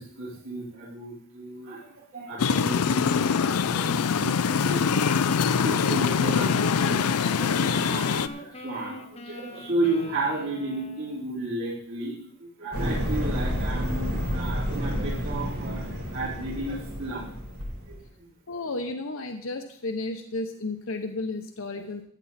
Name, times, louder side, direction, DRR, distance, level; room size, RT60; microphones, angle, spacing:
voice 1, 0.0-17.3 17.8-17.9 21.7-21.8, right 2 dB, 60° right, -8 dB, 4.5 m, -33 dB
sound 1, 2.4-8.3, left 6 dB, 90° left, 0.5 m, -24 dB
sound 2, 3.0-11.4, left 2 dB, 30° left, 1.0 m, -42 dB
sound 3, 12.7-18.0, equal, 85° right, 6.1 m, -30 dB
voice 2, 18.5-22.0, left 2 dB, 60° left, 5 dB, 0.9 m, -33 dB
14.5 x 9.1 x 4.2 m, 0.63 s
head